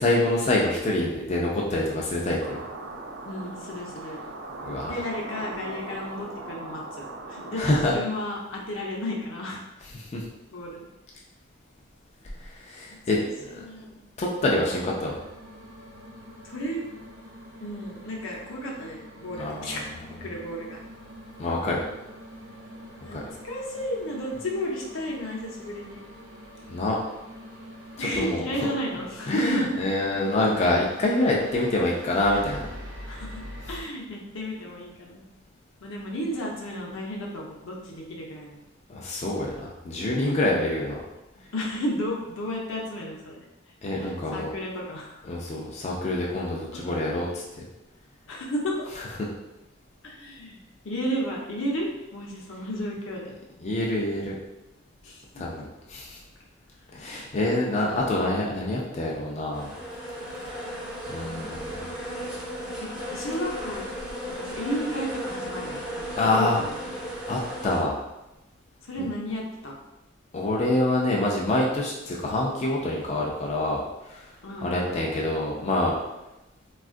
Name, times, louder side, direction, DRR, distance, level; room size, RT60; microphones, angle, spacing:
voice 1, 0.0-2.6 4.6-4.9 7.6-7.9 9.9-10.2 12.7-13.2 13.5-13.6 14.2-15.2 19.4-19.8 21.4-21.8 23.1-23.2 26.7-27.0 28.0-28.4 29.3-32.7 38.9-41.0 43.8-44.5 45.2-47.4 53.6-54.4 55.4-56.2 56.9-59.7 60.5-60.6 61.1-61.7 66.2-66.6 67.3-68.0 70.3-73.8 74.1-74.2 74.6-76.0, left 2 dB, 35° left, -3 dB, 0.4 m, -26 dB
sound 1, 2.4-7.7, right 2 dB, 60° right, 0.5 m, -39 dB
voice 2, 3.3-4.2 4.9-9.6 10.5-10.8 12.9-14.1 16.4-16.9 17.6-19.9 20.2-20.8 23.0-23.2 23.4-26.0 28.0-29.7 33.1-35.2 35.8-38.6 41.5-43.4 44.0-45.2 46.7-47.0 48.3-48.7 50.0-53.3 55.0-55.4 57.9-58.2 61.0-61.6 62.8-63.9 64.4-66.9 68.8-69.8 74.4-75.1, equal, 80° left, -2 dB, 0.6 m, -33 dB
sound 2, 14.8-33.8, equal, 80° right, 0.8 m, -44 dB
sound 3, 59.5-67.8, equal, 5° right, 0.8 m, -35 dB
3.6 x 2.4 x 2.4 m, 0.96 s
head